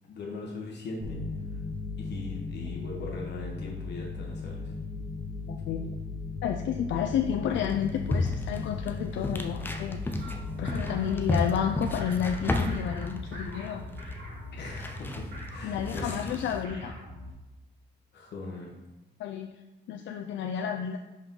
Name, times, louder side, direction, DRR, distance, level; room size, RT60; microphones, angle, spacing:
voice 1, 0.0-1.2 2.0-4.8 14.5-16.3 18.1-18.7, left 3 dB, 65° left, -1 dB, 1.0 m, -40 dB
sound 1, 1.0-14.2, left 4 dB, 25° left, 1.4 m, -37 dB
voice 2, 5.5-5.9 6.4-13.9 15.6-17.0 19.2-19.5 19.9-21.0, left 8 dB, 80° left, 4 dB, 0.4 m, -31 dB
sound 2, 7.5-16.6, left 2 dB, 10° left, 0.4 m, -34 dB
sound 3, 10.2-17.3, equal, 80° right, 1.9 m, -42 dB
5.5 x 4.7 x 3.7 m, 1.1 s
wide cardioid pair, 170°, 19 cm